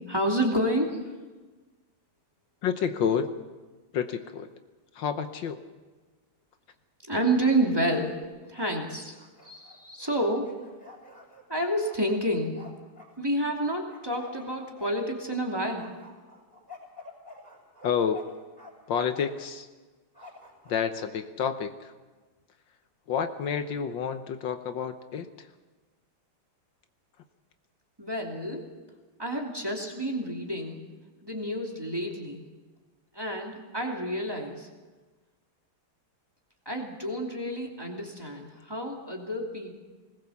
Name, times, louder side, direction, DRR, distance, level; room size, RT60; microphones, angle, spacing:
voice 1, 0.1-1.2 7.1-9.2 9.4-10.6 11.5-12.6 13.2-15.9 28.0-28.7 29.2-30.8 31.2-32.4 33.1-34.7 36.7-39.8, right 1 dB, 10° right, 0 dB, 2.7 m, -29 dB
voice 2, 2.6-3.3 3.9-4.5 4.9-5.6 17.8-18.3 18.9-19.7 20.7-21.9 23.1-25.5, left 7 dB, 75° left, 9 dB, 1.7 m, -29 dB
Bark, 8.2-8.8 9.1-13.1 13.6-15.4 15.7-18.7 19.0-19.5 20.1-21.1, left 3 dB, 5° left, 5.7 m, -49 dB
20.5 x 19.5 x 7.2 m, 1.3 s
omnidirectional pair, 2.1 m